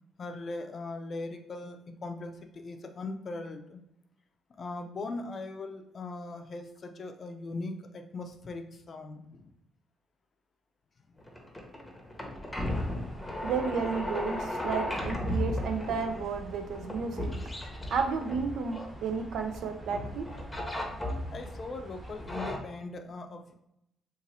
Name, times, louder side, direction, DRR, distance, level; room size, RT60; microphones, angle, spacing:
voice 1, 0.2-3.8 4.6-9.5 21.3-23.5, left 3 dB, 45° left, 5 dB, 0.4 m, -40 dB
sound 1, 11.2-19.6 19.9-21.5 22.0-22.6, left 1 dB, 15° left, 0.8 m, -35 dB
sound 2, 12.7-22.6, right 1 dB, 20° right, 1.0 m, -46 dB
voice 2, 13.4-17.4 17.9-20.3, right 5 dB, 75° right, 6 dB, 0.4 m, -32 dB
2.7 x 2.5 x 4.0 m, 0.80 s
cardioid pair, 90°, 0 cm